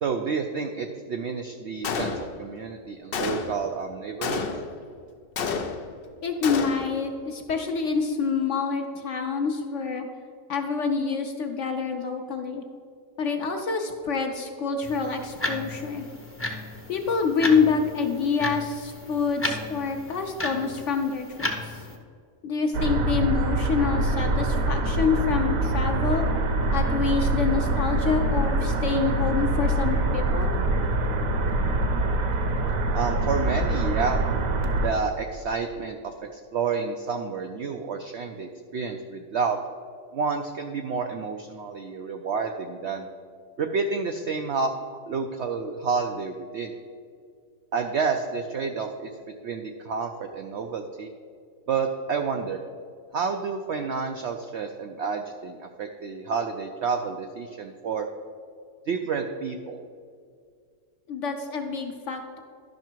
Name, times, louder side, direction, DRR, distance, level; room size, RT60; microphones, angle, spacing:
voice 1, 0.0-4.5 32.9-34.3 34.8-39.6 40.1-43.1 43.6-44.7 45.1-46.7 47.7-49.1 49.4-51.1 51.7-52.6 53.1-58.1 58.9-59.9, right 5 dB, 80° right, 5 dB, 0.6 m, -29 dB
Gunshot gunfire, 1.8-2.6 3.1-3.7 4.2-4.8 5.4-6.0 6.4-7.0, left 5 dB, 80° left, 0.5 m, -30 dB
voice 2, 6.2-10.1 10.5-12.6 13.2-16.1 16.9-21.8 22.4-26.3 26.7-30.5 61.1-62.4, left 5 dB, 60° left, 4 dB, 0.8 m, -27 dB
sound 1, 14.8-22.0, left 1 dB, 15° left, 0.4 m, -34 dB
sound 2, 22.7-34.9, right 2 dB, 60° right, 1.1 m, -24 dB
12.0 x 5.8 x 4.5 m, 2.2 s
omnidirectional pair, 1.8 m